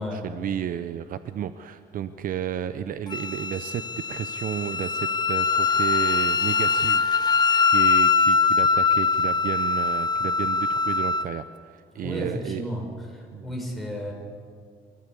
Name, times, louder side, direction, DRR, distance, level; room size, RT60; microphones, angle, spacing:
voice 1, 0.0-12.7 13.3-13.6, right 9 dB, 55° right, 12 dB, 0.8 m, -32 dB
Wind instrument woodwind instrument, 3.1-11.3, left 5 dB, 25° left, 0.6 m, -22 dB
voice 2, 12.0-12.8 13.1-14.1, equal, ahead, -2 dB, 6.7 m, -32 dB
28.5 x 13.0 x 8.4 m, 2.1 s
cardioid pair, 110°, 17 cm